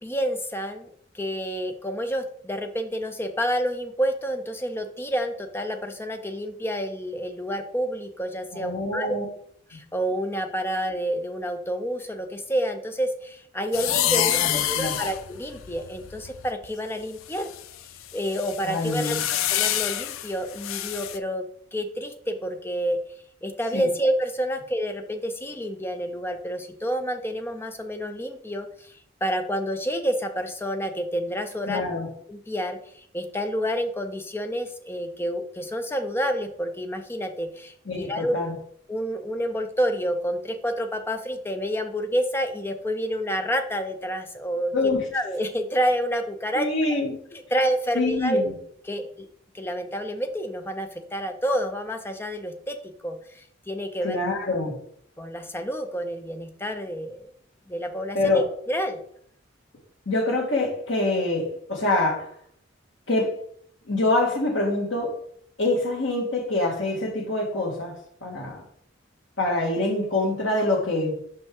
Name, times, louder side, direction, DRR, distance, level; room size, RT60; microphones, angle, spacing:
voice 1, 0.0-9.1 9.7-14.4 14.7-17.5 18.1-21.4 21.7-23.0 23.4-31.8 32.3-38.4 38.9-44.7 45.1-46.7 47.3-48.5 48.8-49.3 49.5-52.8 53.0-54.2 55.2-57.3 57.7-58.4 58.7-59.0, equal, 10° left, 6 dB, 0.5 m, -29 dB
voice 2, 8.5-9.3 14.1-15.0 18.6-19.2 23.7-23.9 31.7-32.1 37.9-38.5 44.7-45.0 46.5-47.1 47.9-48.5 54.0-54.8 58.1-58.4 60.1-62.3 63.1-63.3 63.9-65.1 65.6-68.0 68.2-68.6 69.4-71.1, left 2 dB, 65° left, 0 dB, 1.8 m, -25 dB
sound 1, 13.7-16.7 17.3-21.2, left 12 dB, 80° left, 0.4 m, -28 dB
5.4 x 5.3 x 3.7 m, 0.64 s
head